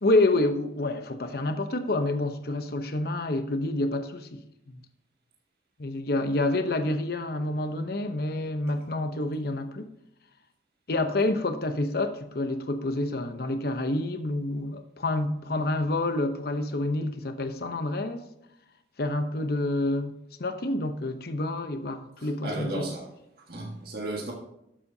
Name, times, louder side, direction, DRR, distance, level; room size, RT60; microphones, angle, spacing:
voice 1, 0.0-4.4 4.7-4.8 5.8-9.9 10.9-18.3 19.0-22.9, left 2 dB, 55° left, 0.8 m, -28 dB
voice 2, 22.2-23.1 23.5-24.3, right 2 dB, 55° right, 1.6 m, -34 dB
12.0 x 7.5 x 2.8 m
head